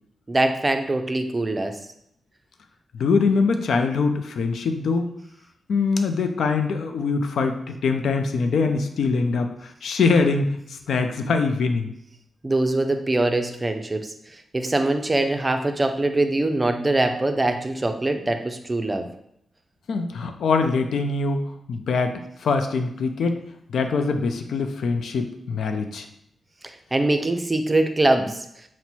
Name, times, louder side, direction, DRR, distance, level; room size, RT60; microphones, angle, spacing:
voice 1, 0.3-1.8 12.4-14.1 14.5-19.1 26.9-28.4, right 2 dB, 25° right, 6 dB, 0.4 m, -23 dB
voice 2, 2.9-5.1 5.7-11.9 19.9-21.4 21.7-23.4 23.7-26.1, left 4 dB, 85° left, 6 dB, 0.4 m, -23 dB
4.4 x 2.1 x 4.1 m, 0.73 s
cardioid pair, 85°, 0 cm